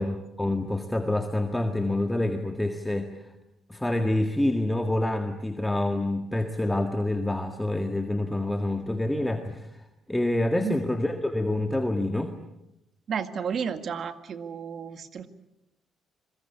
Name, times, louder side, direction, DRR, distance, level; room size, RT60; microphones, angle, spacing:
voice 1, 0.0-3.1 3.7-9.8 10.1-12.3, left 1 dB, 10° left, 5 dB, 1.9 m, -27 dB
voice 2, 13.1-15.3, right 7 dB, 55° right, 10 dB, 2.0 m, -32 dB
26.0 x 22.0 x 8.6 m, 0.88 s
cardioid pair, 90°, 0 cm